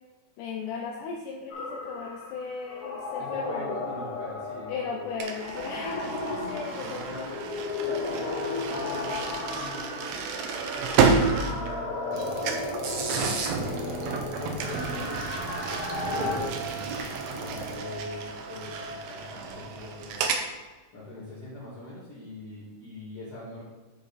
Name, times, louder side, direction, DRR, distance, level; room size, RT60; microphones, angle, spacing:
voice 1, 0.4-3.8 4.7-7.4 8.0-8.1 16.2-16.6, left 5 dB, 75° left, 0 dB, 2.0 m, -36 dB
sound 1, 1.5-16.4, left 3 dB, 60° left, 1.5 m, -35 dB
voice 2, 3.2-5.0 5.9-6.3 6.7-7.3 7.8-12.3 13.5-15.2 15.5-16.9 17.4-20.3 20.9-23.6, left 1 dB, 30° left, -11 dB, 2.4 m, -43 dB
sound 2, 5.2-12.2 12.4-12.8 14.6-20.5, right 5 dB, 85° right, 2.5 m, -31 dB
sound 3, 12.1-17.7, right 4 dB, 70° right, 1.7 m, -34 dB
8.7 x 4.8 x 4.2 m, 1.2 s
omnidirectional pair, 3.8 m